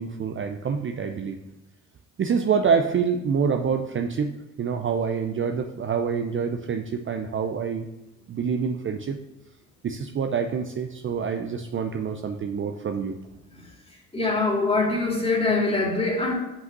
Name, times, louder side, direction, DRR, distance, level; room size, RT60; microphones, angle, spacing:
voice 1, 0.0-1.4 2.2-4.3 4.6-7.9 8.3-9.2 9.8-13.2, right 6 dB, 35° right, 6 dB, 0.6 m, -26 dB
voice 2, 14.1-16.3, left 3 dB, 15° left, -1 dB, 2.5 m, -24 dB
5.7 x 5.5 x 6.0 m, 0.97 s
hypercardioid pair, 65°, 38 cm